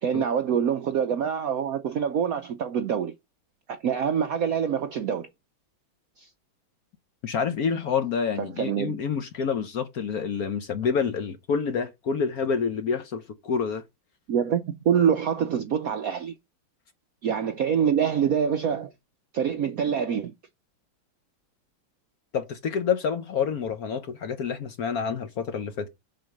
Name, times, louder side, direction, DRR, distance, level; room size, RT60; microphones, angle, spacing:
voice 1, 0.0-3.1 3.7-5.3 6.2-6.3 8.4-9.0 14.3-16.3 17.2-18.9 19.3-20.3, right 8 dB, 70° right, 0.8 m, -25 dB
voice 2, 7.2-13.8 22.3-25.9, left 6 dB, 60° left, 1.0 m, -28 dB
6.6 x 4.3 x 6.5 m
omnidirectional pair, 2.2 m